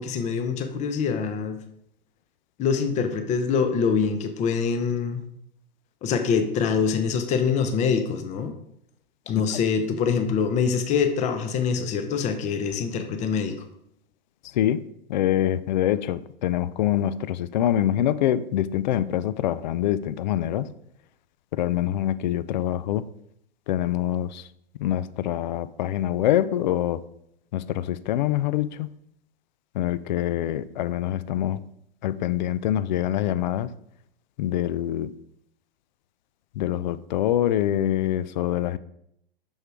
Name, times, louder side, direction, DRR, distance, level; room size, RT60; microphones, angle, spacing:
voice 1, 0.0-1.6 2.6-5.2 6.0-8.5 9.3-13.5, left 6 dB, 25° left, 8 dB, 0.9 m, -24 dB
voice 2, 15.1-20.7 21.5-23.1 23.7-24.5 24.8-27.0 27.5-28.9 29.7-31.6 32.0-33.7 34.4-35.1 36.6-38.8, left 12 dB, 50° left, 16 dB, 0.5 m, -25 dB
6.4 x 6.4 x 4.8 m, 0.74 s
figure-of-eight pair, 110°, 30 cm